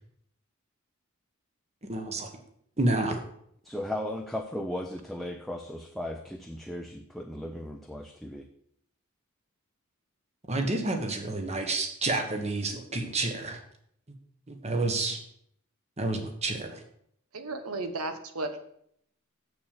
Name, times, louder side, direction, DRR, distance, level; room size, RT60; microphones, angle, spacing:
voice 1, 1.9-2.3 2.8-3.2 10.5-13.6 14.5-15.2 16.0-16.8, right 2 dB, 30° right, 5 dB, 1.4 m, -29 dB
voice 2, 3.6-8.5, left 1 dB, ahead, 2 dB, 0.5 m, -36 dB
voice 3, 17.3-18.6, right 2 dB, 85° right, 8 dB, 1.2 m, -34 dB
7.1 x 6.8 x 6.6 m, 0.68 s
head